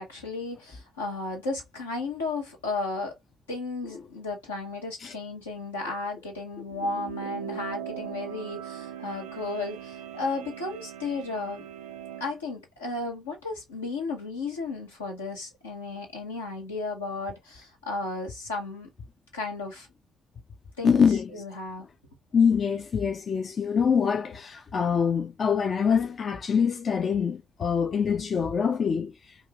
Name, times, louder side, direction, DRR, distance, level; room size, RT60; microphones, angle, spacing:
voice 1, 0.0-3.2 3.5-11.6 12.2-18.9 19.3-19.9 20.8-21.0 21.3-21.8, left 3 dB, 85° left, 0.8 m, -34 dB
sound 1, 6.6-12.4, right 10 dB, 75° right, 0.3 m, -40 dB
voice 2, 20.8-21.4 22.3-29.4, left 6 dB, 45° left, 0.4 m, -24 dB
2.5 x 2.4 x 2.8 m
figure-of-eight pair, 40°, 0 cm